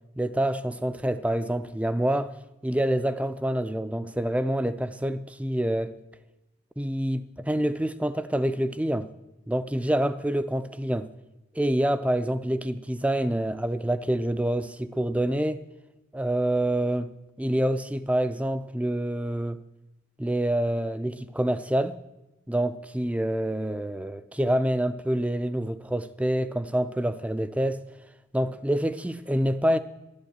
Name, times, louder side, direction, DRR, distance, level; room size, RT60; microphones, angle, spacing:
voice 1, 0.2-2.3 2.6-5.9 6.8-9.1 9.5-11.1 11.5-15.6 16.1-17.1 17.4-19.6 20.2-22.0 22.5-27.8 28.3-29.8, right 1 dB, 5° right, 0.4 m, -27 dB
12.0 x 9.7 x 8.0 m
head